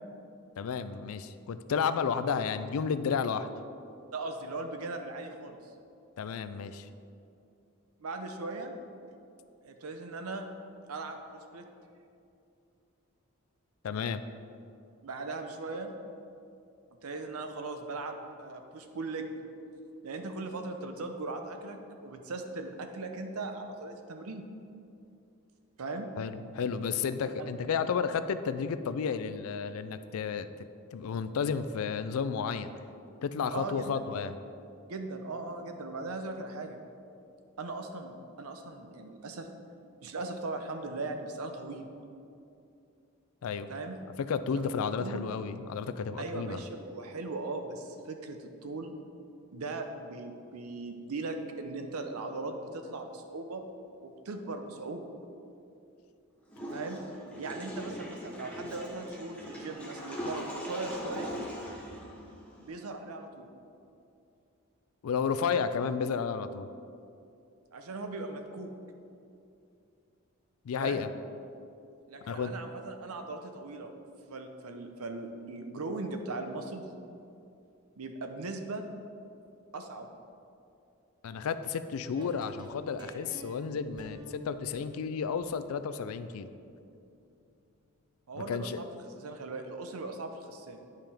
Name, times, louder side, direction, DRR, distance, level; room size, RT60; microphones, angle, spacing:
voice 1, 0.6-3.5 6.2-6.9 13.8-14.2 26.2-30.5 30.9-32.7 33.2-34.3 43.4-43.7 44.2-46.6 65.0-66.7 70.7-71.1 72.3-72.5 81.2-86.5 88.3-88.8, left 6 dB, 80° left, 11 dB, 0.4 m, -32 dB
voice 2, 4.1-5.6 8.0-8.7 9.6-10.5 10.9-11.7 15.0-15.9 17.0-19.3 20.0-24.5 25.8-26.1 27.4-27.5 33.5-34.1 34.8-36.8 37.6-39.5 40.0-41.9 43.7-44.0 44.5-44.7 45.0-45.3 46.2-48.9 49.5-53.6 54.0-55.0 56.7-57.0 57.4-61.3 62.6-63.5 67.7-68.7 70.8-71.0 72.1-73.9 74.3-76.9 78.0-78.8 79.7-80.1 88.3-90.8, right 3 dB, 85° right, 6 dB, 0.7 m, -39 dB
Water / Toilet flush, 56.5-62.7, equal, 5° left, 0.8 m, -40 dB
sound 1, 82.1-88.2, equal, 20° right, 0.5 m, -50 dB
9.0 x 5.5 x 3.4 m, 2.6 s
head